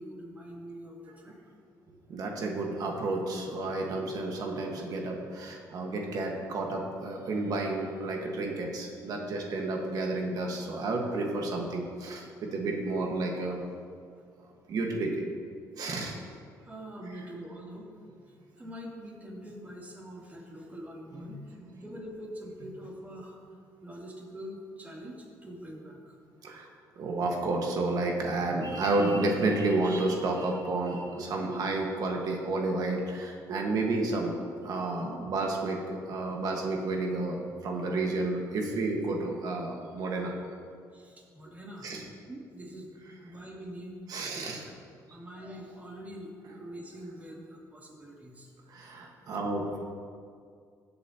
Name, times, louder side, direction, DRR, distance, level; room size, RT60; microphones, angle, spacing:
voice 1, 0.0-1.4 16.6-17.9 18.2-23.4 23.8-26.2 40.9-41.9 42.3-43.0 43.2-44.8 45.1-48.5, equal, 20° right, -4 dB, 3.0 m, -44 dB
voice 2, 2.1-13.6 14.7-15.3 15.8-16.2 26.4-26.7 27.0-34.3 34.6-40.3 41.8-42.0 44.1-44.6 48.7-49.8, right 2 dB, 60° right, 1 dB, 1.5 m, -31 dB
16.0 x 8.1 x 2.9 m, 2.2 s
cardioid pair, 95°, 7 cm